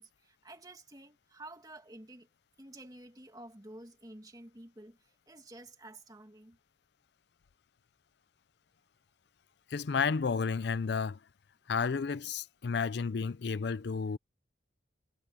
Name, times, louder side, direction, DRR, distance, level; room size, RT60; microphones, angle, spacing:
voice 1, 0.0-2.3 2.6-6.6, right 1 dB, 20° right, 2.2 m, -51 dB
voice 2, 9.7-11.2 11.7-14.2, left 5 dB, 60° left, 0.5 m, -31 dB
head